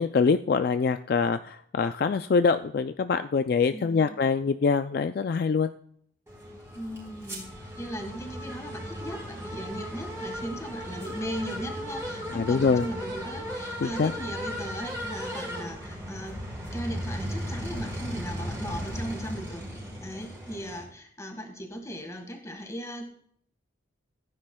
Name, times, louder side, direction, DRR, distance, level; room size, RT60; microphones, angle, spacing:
voice 1, 0.0-5.7 12.3-12.9 13.8-14.1, left 5 dB, 50° left, 9 dB, 0.3 m, -24 dB
voice 2, 3.7-4.2 6.7-7.5 7.8-16.4 16.7-19.7 20.0-23.0, equal, 15° left, 4 dB, 1.6 m, -38 dB
sound 1, 6.3-20.8, equal, 15° right, 4.1 m, -36 dB
15.5 x 9.6 x 2.2 m, 0.64 s
head